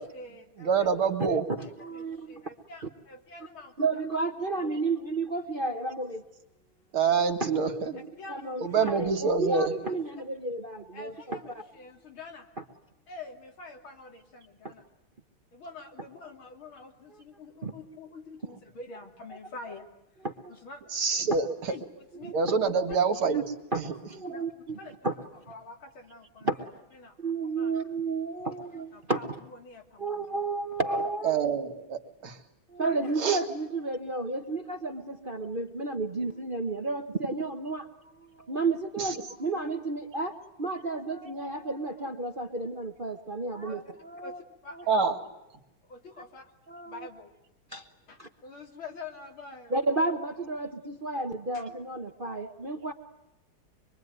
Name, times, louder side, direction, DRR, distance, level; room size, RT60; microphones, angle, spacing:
voice 1, 0.0-4.8 8.2-8.7 9.9-10.0 10.9-12.5 13.1-14.8 15.5-19.8 20.5-20.8 21.7-21.9 22.1-22.3 22.7-22.8 23.3-23.4 24.3-24.4 24.8-26.5 26.9-27.2 27.5-27.7 28.9-30.2 32.8-33.0 43.7-43.8 44.2-45.1 45.8-46.5 46.9-47.3 48.1-49.7 51.5-51.6, left 3 dB, 70° left, 3 dB, 3.8 m, -47 dB
voice 2, 0.6-1.4 6.9-7.9 8.6-9.7 20.9-21.4 22.3-23.4 23.7-23.9 31.2-32.4 33.2-33.4 39.0-39.2 44.9-45.2, right 5 dB, 80° right, 6 dB, 2.9 m, -26 dB
voice 3, 1.6-2.3 3.8-6.2 7.4-7.5 7.9-8.0 8.3-11.4 14.6-14.7 17.6-17.7 20.2-20.5 22.2-22.3 23.7-24.8 25.0-25.1 26.4-26.6 27.2-29.2 30.0-31.5 32.7-37.9 38.4-44.4 46.7-47.1 47.7-47.8 48.2-48.3 49.7-52.9, right 3 dB, 35° right, 5 dB, 1.0 m, -32 dB
25.0 x 23.5 x 9.3 m, 0.92 s
omnidirectional pair, 2.3 m